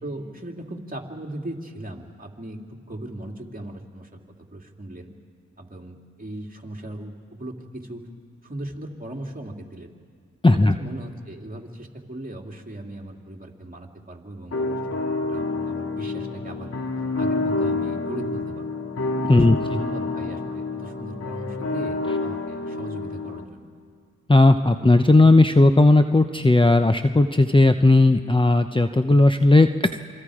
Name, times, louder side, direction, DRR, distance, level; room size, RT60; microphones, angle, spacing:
voice 1, 0.0-4.1 4.5-5.1 5.6-8.1 8.4-9.9 10.5-16.7 17.2-18.7 19.3-23.7, right 1 dB, 25° right, 1 dB, 2.9 m, -38 dB
voice 2, 10.4-10.7 19.3-19.6 24.3-29.7, left 2 dB, 15° left, 8 dB, 0.8 m, -16 dB
sound 1, 14.5-23.4, left 3 dB, 50° left, 2.2 m, -28 dB
26.5 x 24.0 x 5.0 m, 2.2 s
cardioid pair, 45°, 32 cm